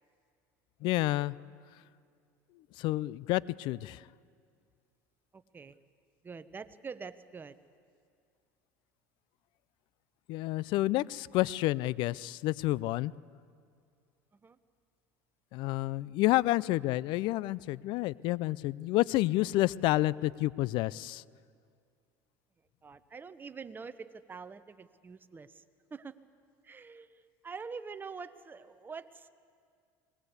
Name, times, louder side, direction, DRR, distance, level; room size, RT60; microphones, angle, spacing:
voice 1, 0.8-1.4 2.8-4.1 10.3-13.1 15.5-21.2, left 17 dB, 60° left, 21 dB, 0.5 m, -29 dB
voice 2, 5.3-5.8 6.2-7.6 14.4-14.6 22.8-25.6 25.9-26.2 26.6-29.3, right 5 dB, 20° right, 12 dB, 1.0 m, -45 dB
24.0 x 20.5 x 8.2 m, 2.2 s
supercardioid pair, 100°, 9 cm